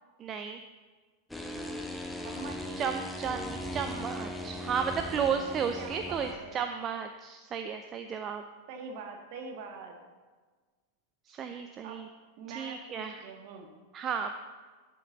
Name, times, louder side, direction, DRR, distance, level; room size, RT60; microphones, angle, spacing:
voice 1, 0.2-0.6 2.8-8.4 11.3-12.1 12.5-13.2 13.9-14.4, right 7 dB, 30° right, 7 dB, 0.5 m, -33 dB
sound 1, 1.3-6.3, left 1 dB, 5° left, 1.0 m, -38 dB
voice 2, 2.2-2.8 5.8-6.6 8.7-9.9 11.8-12.0 12.4-13.7, right 4 dB, 50° right, 3 dB, 1.7 m, -44 dB
11.5 x 6.5 x 4.0 m, 1.4 s
figure-of-eight pair, 90°, 0 cm